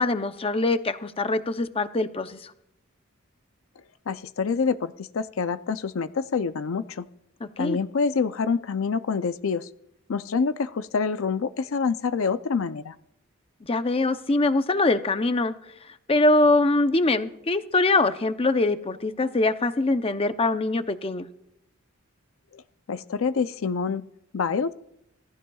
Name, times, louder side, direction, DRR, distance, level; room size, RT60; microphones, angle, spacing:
voice 1, 0.0-2.5 7.4-7.8 13.7-15.5 16.1-21.3, left 2 dB, 25° left, 10 dB, 0.7 m, -23 dB
voice 2, 4.1-7.1 7.6-9.7 10.1-12.9 22.5-22.6 22.9-24.0 24.3-24.7, left 5 dB, 70° left, 12 dB, 0.5 m, -26 dB
26.5 x 17.5 x 2.3 m, 0.79 s
head